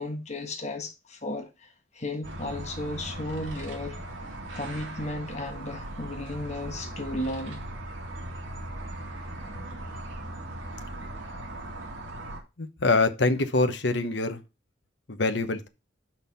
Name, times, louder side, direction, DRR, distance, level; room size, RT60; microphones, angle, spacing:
voice 1, 0.0-1.7 1.9-4.0 4.5-7.6, left 1 dB, 35° left, 1.3 m, -34 dB
sound 1, 2.2-12.4, right 1 dB, 85° right, 2.4 m, -38 dB
voice 2, 12.6-14.4 15.1-15.7, left 3 dB, 65° left, 1.0 m, -25 dB
6.0 x 5.6 x 5.6 m
head